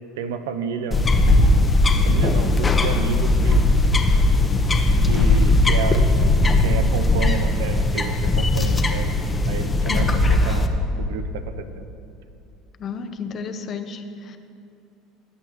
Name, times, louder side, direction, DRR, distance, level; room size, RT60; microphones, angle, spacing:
voice 1, 0.2-1.3 1.5-1.6 2.1-3.6 5.1-6.1 6.6-9.1 9.5-10.7 11.0-11.8, right 6 dB, 80° right, 10 dB, 0.6 m, -30 dB
sound 1, 0.9-10.7, left 2 dB, 25° left, 0.9 m, -18 dB
voice 2, 9.9-10.2 12.8-14.4, left 5 dB, 45° left, 8 dB, 0.7 m, -32 dB
17.0 x 8.0 x 3.1 m, 2.6 s
hypercardioid pair, 80°, 0 cm